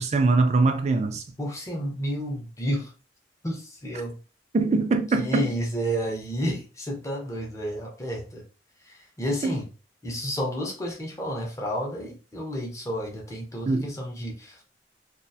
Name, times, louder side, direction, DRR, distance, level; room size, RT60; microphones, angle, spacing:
voice 1, 0.0-1.2 4.5-5.5 9.4-9.5 13.7-13.9, right 3 dB, 40° right, 0.4 m, -22 dB
voice 2, 1.4-2.9 3.4-4.2 5.2-8.4 8.8-9.7 10.0-14.6, equal, 15° left, 0.6 m, -31 dB
2.4 x 2.2 x 2.6 m
head